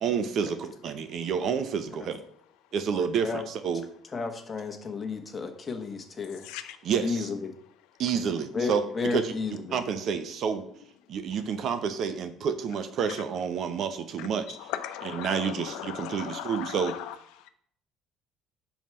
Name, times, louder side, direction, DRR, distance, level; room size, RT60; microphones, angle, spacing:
voice 1, 0.0-2.2 2.7-3.9 6.8-7.3 8.0-9.3 9.7-10.6 11.1-14.7 15.0-17.0, right 6 dB, 60° right, 0.8 m, -29 dB
voice 2, 4.1-6.4 7.0-7.5 8.5-9.8, left 4 dB, 30° left, 1.2 m, -32 dB
voice 3, 6.4-6.8 14.2-17.1, left 11 dB, 85° left, 0.6 m, -37 dB
5.5 x 4.6 x 5.6 m
cardioid pair, 95°, 0 cm